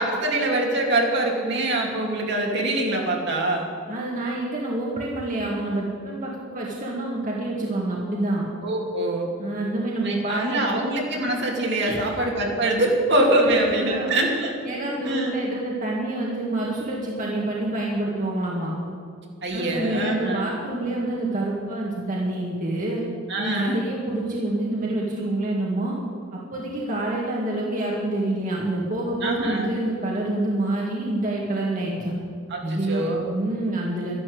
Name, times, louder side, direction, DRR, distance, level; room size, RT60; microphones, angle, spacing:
voice 1, 0.0-3.6 8.6-9.3 10.0-14.6 15.0-15.4 19.4-20.5 23.3-23.8 29.2-29.7 32.5-33.2, right 1 dB, 60° right, 0 dB, 2.8 m, -24 dB
voice 2, 3.9-8.5 9.4-10.8 11.8-12.1 13.4-14.1 14.6-18.7 19.5-23.0 23.4-26.0 26.3-32.1 32.6-34.2, right 1 dB, 40° right, -3 dB, 2.1 m, -27 dB
12.5 x 12.0 x 8.0 m, 2.4 s
head